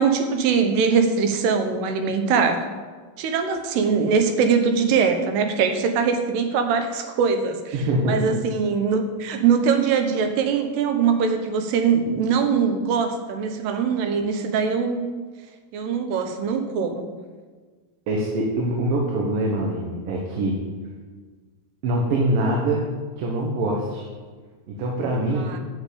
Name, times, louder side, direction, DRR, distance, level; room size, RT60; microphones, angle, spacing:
voice 1, 0.0-2.7 3.2-7.8 8.0-15.0 15.7-17.1 25.4-25.6, right 6 dB, 85° right, 6 dB, 3.1 m, -22 dB
voice 2, 7.7-8.3 18.1-20.6 21.8-22.9 23.2-24.1 24.7-25.5, right 1 dB, 70° right, -1 dB, 2.8 m, -24 dB
8.8 x 7.2 x 8.4 m, 1.5 s
omnidirectional pair, 4.6 m